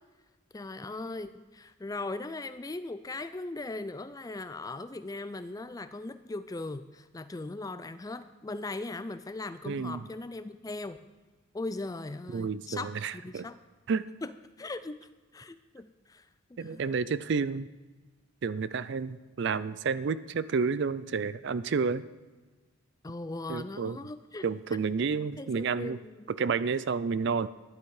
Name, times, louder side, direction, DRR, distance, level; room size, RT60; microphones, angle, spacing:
voice 1, 0.5-11.0 11.5-13.6 14.2-16.9 23.0-24.5 25.4-26.3, left 2 dB, 15° left, 12 dB, 0.3 m, -39 dB
voice 2, 9.7-10.0 12.3-13.5 13.9-14.1 16.6-17.7 18.4-22.0 23.5-24.0 24.4-26.0 26.3-27.5, right 5 dB, 55° right, 16 dB, 0.4 m, -30 dB
12.0 x 10.5 x 4.8 m, 1.3 s
head